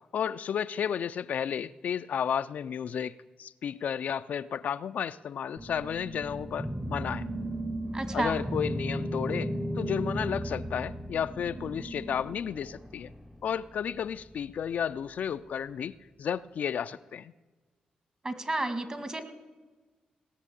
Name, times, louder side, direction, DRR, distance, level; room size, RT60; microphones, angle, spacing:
voice 1, 0.1-7.3 8.1-13.1 13.4-17.3, left 8 dB, 70° left, 0.4 m, -32 dB
sound 1, 5.6-13.3, equal, 5° right, 0.8 m, -35 dB
voice 2, 7.9-8.4 18.2-19.2, right 2 dB, 30° right, 1.8 m, -31 dB
18.0 x 6.4 x 8.5 m
cardioid pair, 65°, 3 cm